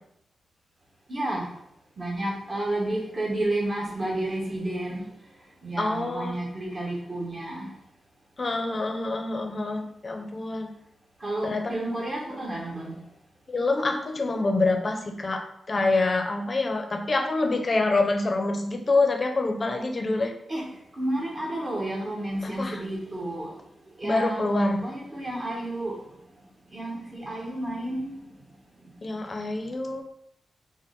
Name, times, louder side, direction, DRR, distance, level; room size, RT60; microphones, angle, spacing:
voice 1, 1.1-1.5 2.0-5.1 5.6-7.7 11.2-13.0 20.5-20.7 20.9-23.5 24.0-26.0 26.7-28.2 28.8-28.9, right 1 dB, 40° right, -2 dB, 1.0 m, -31 dB
voice 2, 5.8-6.4 8.4-10.7 11.4-11.7 13.5-20.3 22.4-22.8 24.0-24.8 29.0-30.0, left 2 dB, 40° left, 4 dB, 0.5 m, -26 dB
3.6 x 2.1 x 3.7 m, 0.75 s
cardioid pair, 80°, 0 cm